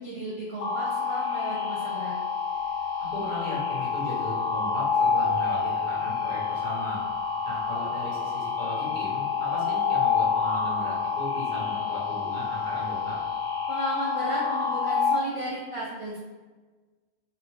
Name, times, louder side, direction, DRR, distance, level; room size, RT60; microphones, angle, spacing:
voice 1, 0.0-2.1 13.7-16.2, right 1 dB, 45° right, -6 dB, 0.4 m, -34 dB
sound 1, 0.6-15.2, left 6 dB, 80° left, 0.9 m, -28 dB
voice 2, 3.1-7.0 7.4-13.2, left 1 dB, 45° left, -8 dB, 1.2 m, -36 dB
2.8 x 2.1 x 3.2 m, 1.3 s
omnidirectional pair, 1.2 m